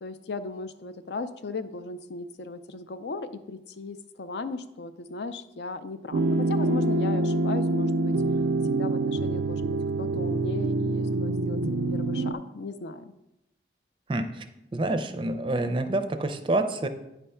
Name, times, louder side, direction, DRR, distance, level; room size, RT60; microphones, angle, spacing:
voice 1, 0.0-8.2 8.7-11.6 11.9-13.1, left 3 dB, 70° left, 11 dB, 0.5 m, -37 dB
sound 1, 6.1-12.3, right 2 dB, 85° right, 0.4 m, -26 dB
voice 2, 14.7-16.9, right 2 dB, 30° right, 9 dB, 0.4 m, -27 dB
9.1 x 3.3 x 5.5 m, 0.90 s
head